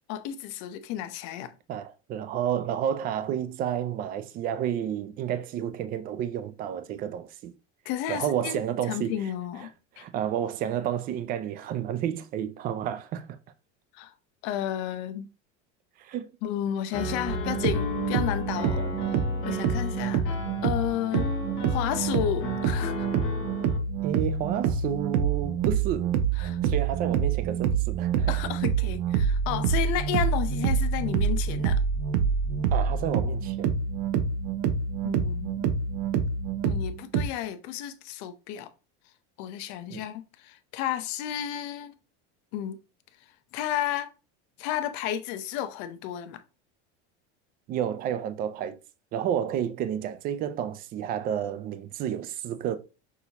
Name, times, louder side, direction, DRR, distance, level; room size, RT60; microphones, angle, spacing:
voice 1, 0.1-1.5 7.9-8.6 8.9-9.7 10.0-10.1 13.9-14.1 14.4-15.3 16.4-18.8 19.5-20.4 20.6-21.3 21.7-23.1 26.4-26.6 28.3-31.8 35.0-35.7 36.6-38.7 39.4-41.9 42.5-42.8 43.5-44.1 44.6-46.4, left 11 dB, 55° left, 0.7 m, -32 dB
voice 2, 1.7-7.5 8.1-9.1 9.6-9.7 10.0-13.4 16.0-16.3 18.8-18.9 24.0-28.4 32.7-33.7 39.9-40.0 47.7-48.8 49.1-52.8, right 9 dB, 30° right, 0.4 m, -31 dB
Piano, 16.9-23.8, left 2 dB, 35° left, 1.3 m, -35 dB
sound 1, 17.3-37.3, right 6 dB, 60° right, 0.8 m, -27 dB
6.1 x 2.7 x 2.8 m
cardioid pair, 155°, 33 cm